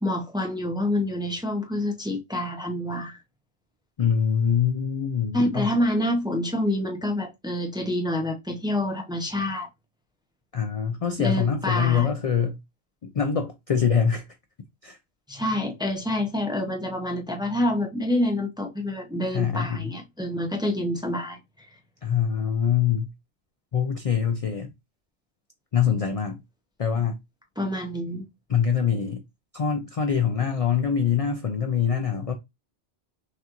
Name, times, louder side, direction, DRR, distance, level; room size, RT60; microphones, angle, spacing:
voice 1, 0.0-3.2 5.3-9.7 11.2-12.1 15.3-21.4 27.6-28.2, left 1 dB, 5° right, 0.6 m, -27 dB
voice 2, 4.0-5.7 10.5-12.6 13.0-14.3 14.8-15.0 19.3-19.9 22.0-23.1 23.7-24.7 25.7-26.4 26.8-27.2 28.5-29.2 29.5-32.3, left 7 dB, 45° left, 0.5 m, -24 dB
5.9 x 2.5 x 2.9 m
omnidirectional pair, 1.1 m